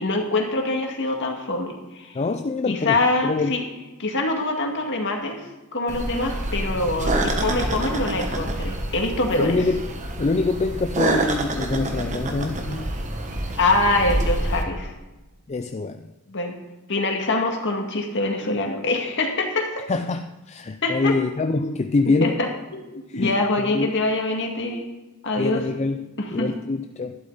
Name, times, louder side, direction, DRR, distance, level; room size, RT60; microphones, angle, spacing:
voice 1, 0.0-2.2 2.6-3.6 4.0-5.4 5.7-9.6 13.5-14.9 16.3-16.5 16.9-19.9 20.8-21.1 22.2-24.8 25.2-25.6 26.2-26.6, left 2 dB, 55° left, 2 dB, 2.0 m, -24 dB
voice 2, 2.1-3.0 3.2-3.6 9.4-9.9 10.2-12.9 15.5-16.1 19.9-22.4 23.1-23.9 25.4-27.2, left 3 dB, 30° left, 6 dB, 0.4 m, -25 dB
sound 1, 5.9-14.6, right 1 dB, 35° right, 1.2 m, -27 dB
12.0 x 11.5 x 4.0 m, 1.1 s
head